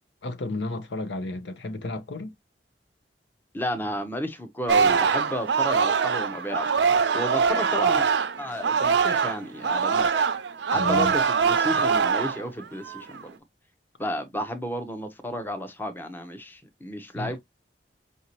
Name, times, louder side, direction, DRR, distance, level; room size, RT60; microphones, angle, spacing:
voice 1, 0.2-2.3 10.7-11.1 17.1-17.4, left 2 dB, 80° left, 0.7 m, -32 dB
voice 2, 3.5-6.7 7.1-8.1 8.4-10.1 10.7-13.3 14.0-17.4, equal, 10° left, 0.7 m, -32 dB
Singing, 4.7-9.4 9.6-12.4 12.8-13.2, right 6 dB, 75° right, 0.5 m, -23 dB
5.2 x 2.7 x 2.9 m
head